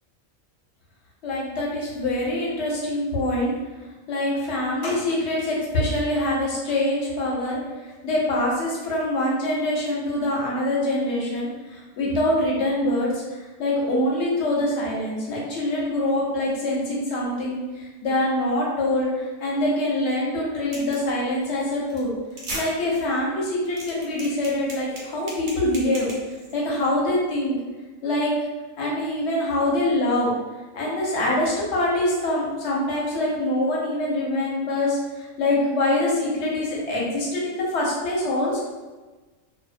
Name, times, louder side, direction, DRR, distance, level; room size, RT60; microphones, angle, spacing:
voice 1, 1.2-3.5 4.1-13.2 13.6-22.1 22.5-26.1 26.5-27.6 28.0-28.4 28.8-30.3 30.7-38.6, left 1 dB, 65° left, -4 dB, 0.9 m, -24 dB
sound 1, 20.7-21.1 21.4-21.6 21.9-22.0 22.3-22.6 22.9-23.0 23.4-26.5, right 2 dB, 80° right, 1.0 m, -36 dB
2.5 x 2.0 x 2.5 m, 1.2 s
omnidirectional pair, 1.3 m